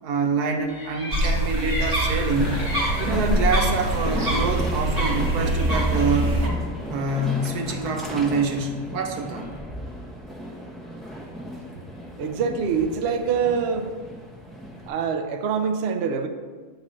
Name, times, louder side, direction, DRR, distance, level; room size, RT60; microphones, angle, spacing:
voice 1, 0.0-2.6 3.0-6.4 6.9-9.5, right 3 dB, 85° right, 3 dB, 1.4 m, -26 dB
sound 1, 0.7-6.1, left 1 dB, 60° left, 1.8 m, -37 dB
sound 2, 1.1-6.5, right 1 dB, 30° right, 1.3 m, -24 dB
Train, 2.4-14.9, equal, ahead, 0.6 m, -35 dB
voice 2, 12.2-14.0 14.9-16.3, right 6 dB, 55° right, 6 dB, 0.7 m, -25 dB
8.7 x 3.9 x 6.2 m, 1.5 s
omnidirectional pair, 1.6 m